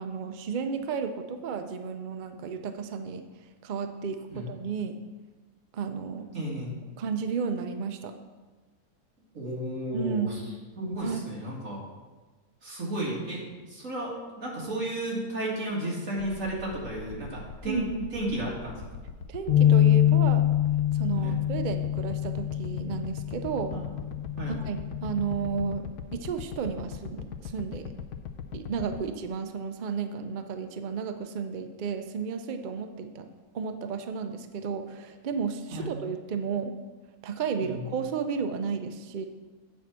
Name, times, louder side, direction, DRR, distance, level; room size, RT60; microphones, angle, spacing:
voice 1, 0.0-3.2 3.6-5.0 5.7-6.3 7.0-8.1 9.9-10.4 11.0-11.3 17.7-18.1 19.3-20.4 20.9-23.7 24.5-27.9 28.5-33.3 33.5-36.7 37.2-39.3, right 6 dB, 85° right, 7 dB, 0.4 m, -33 dB
voice 2, 6.3-6.7 9.3-10.4 10.8-11.8 12.6-13.4 13.7-17.9 18.1-18.8 21.2-21.4 23.7-23.8 24.4-24.6 35.7-35.9 37.6-37.8, right 1 dB, 55° right, -4 dB, 2.5 m, -33 dB
sound 1, 16.2-29.0, left 7 dB, 75° left, 1.1 m, -40 dB
sound 2, 19.5-25.7, left 11 dB, 40° left, 1.5 m, -25 dB
8.6 x 4.5 x 7.2 m, 1.3 s
omnidirectional pair, 1.7 m